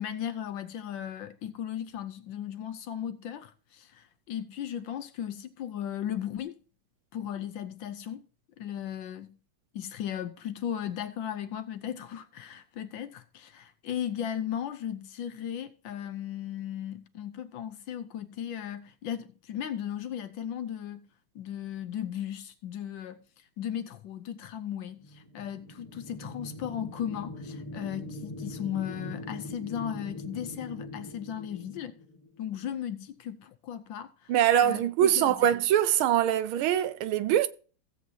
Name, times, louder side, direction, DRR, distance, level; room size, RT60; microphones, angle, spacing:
voice 1, 0.0-6.6 7.1-8.3 8.6-9.4 9.7-21.0 21.3-32.0 32.4-34.3 34.6-35.5, left 10 dB, 70° left, 1.3 m, -36 dB
sound 1, 25.0-32.6, left 2 dB, 15° left, 1.7 m, -42 dB
voice 2, 34.3-37.5, right 10 dB, 75° right, 1.4 m, -23 dB
16.0 x 7.8 x 2.8 m
omnidirectional pair, 2.4 m